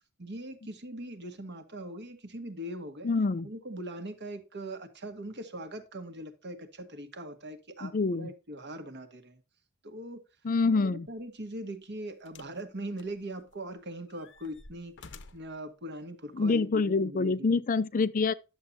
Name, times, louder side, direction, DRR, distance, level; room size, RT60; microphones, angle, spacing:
voice 1, 0.2-3.1 3.4-9.4 9.8-10.2 10.6-17.6, right 1 dB, 50° right, 1.6 m, -41 dB
voice 2, 3.0-3.5 7.8-8.3 10.4-11.1 16.3-18.3, left 4 dB, 35° left, 0.4 m, -26 dB
sound 1, 11.1-11.3 12.3-12.6 13.0-13.7 14.1-15.6 16.5-16.6, left 4 dB, 55° left, 0.9 m, -52 dB
10.5 x 7.3 x 2.7 m
head